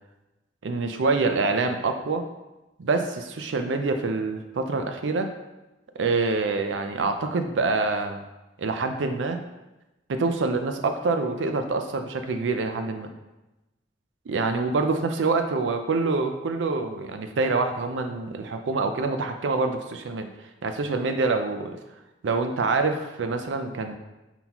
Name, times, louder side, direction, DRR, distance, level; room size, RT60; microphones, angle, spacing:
voice 1, 0.6-2.2 2.8-5.3 6.0-8.2 8.6-9.4 10.1-13.1 14.3-20.3 20.6-21.8 22.2-24.0, right 3 dB, 80° right, 6 dB, 0.5 m, -26 dB
4.0 x 3.8 x 2.9 m, 1.0 s
head